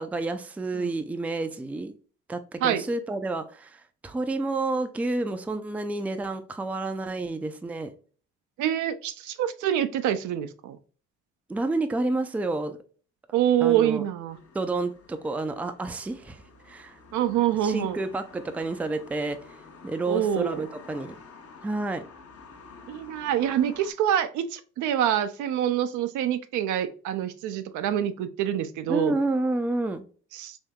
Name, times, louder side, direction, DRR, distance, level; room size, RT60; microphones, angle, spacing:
voice 1, 0.0-1.9 2.3-7.9 11.5-12.8 13.6-14.0 14.5-17.0 17.6-19.4 19.8-21.2 21.6-22.0 28.9-30.0, right 2 dB, 5° right, 8 dB, 0.3 m, -29 dB
voice 2, 8.6-10.8 13.3-14.4 17.1-18.0 20.1-20.7 22.9-29.1 30.3-30.6, right 10 dB, 65° right, 10 dB, 0.4 m, -26 dB
sound 1, 14.3-23.9, left 4 dB, 45° left, 0.8 m, -49 dB
3.5 x 2.6 x 2.3 m, 0.40 s
supercardioid pair, 60°, 32 cm